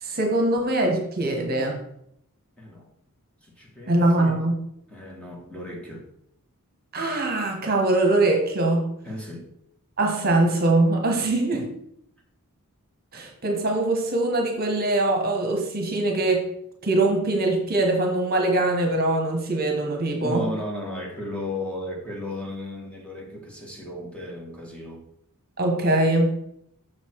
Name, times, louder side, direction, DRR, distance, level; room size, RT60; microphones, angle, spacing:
voice 1, 0.0-1.8 3.9-4.6 6.9-8.9 10.0-11.7 13.1-16.5 16.8-20.5 25.6-26.3, right 2 dB, 45° right, 3 dB, 1.2 m, -22 dB
voice 2, 2.6-2.9 3.4-4.4 4.9-6.1 9.0-9.5 20.2-25.0, left 1 dB, 5° left, -2 dB, 1.8 m, -35 dB
7.0 x 6.3 x 4.6 m, 0.75 s
head